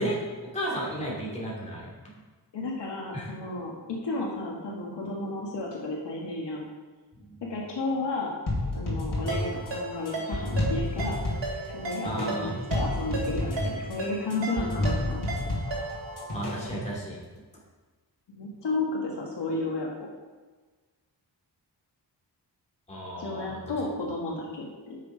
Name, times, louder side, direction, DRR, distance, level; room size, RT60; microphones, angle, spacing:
voice 1, 0.0-1.9 3.1-3.3 7.2-7.4 12.0-12.5 16.3-17.2 22.9-23.6, right 1 dB, 15° left, -5 dB, 2.8 m, -33 dB
voice 2, 2.5-6.7 7.5-8.3 8.7-11.2 11.7-15.3 18.3-20.1 23.2-25.0, left 2 dB, 70° left, -2 dB, 1.6 m, -33 dB
sound 1, 8.5-16.9, left 1 dB, 50° left, 2.9 m, -31 dB
Ringtone, 9.3-16.1, right 2 dB, 85° right, 2.9 m, -36 dB
6.8 x 6.6 x 5.0 m, 1.3 s
wide cardioid pair, 115°, 43 cm